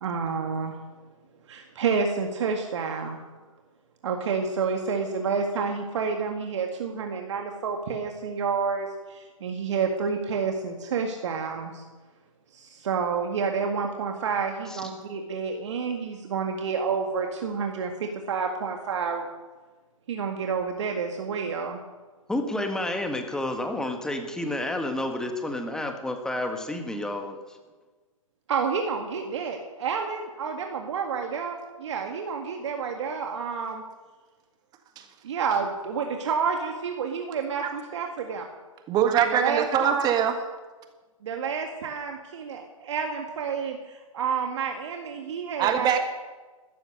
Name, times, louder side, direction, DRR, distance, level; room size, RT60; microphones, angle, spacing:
voice 1, 0.0-0.8 1.5-3.2 4.0-11.8 12.5-19.3 20.1-21.8 28.5-33.8 35.2-38.5 39.3-40.1 41.2-45.9, right 5 dB, 55° right, 1.9 m, -29 dB
voice 2, 22.3-27.4, left 1 dB, 5° left, 1.7 m, -30 dB
voice 3, 38.9-40.3 45.6-46.0, right 9 dB, 25° right, 1.6 m, -22 dB
15.5 x 13.5 x 6.7 m
hypercardioid pair, 125°, 18 cm